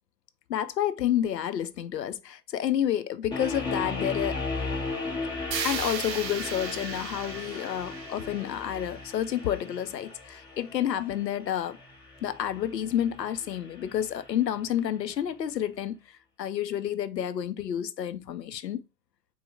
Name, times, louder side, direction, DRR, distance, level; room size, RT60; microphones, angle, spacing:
voice 1, 0.5-4.4 5.6-11.8 12.2-18.8, left 10 dB, 80° left, 0.5 m, -30 dB
sound 1, 3.3-14.4, left 3 dB, 10° left, 0.7 m, -36 dB
Wind instrument woodwind instrument, 4.4-9.2, left 1 dB, 35° left, 0.9 m, -53 dB
sound 2, 5.5-9.6, right 8 dB, 80° right, 0.6 m, -37 dB
3.9 x 2.0 x 4.4 m
figure-of-eight pair, 100°, 49 cm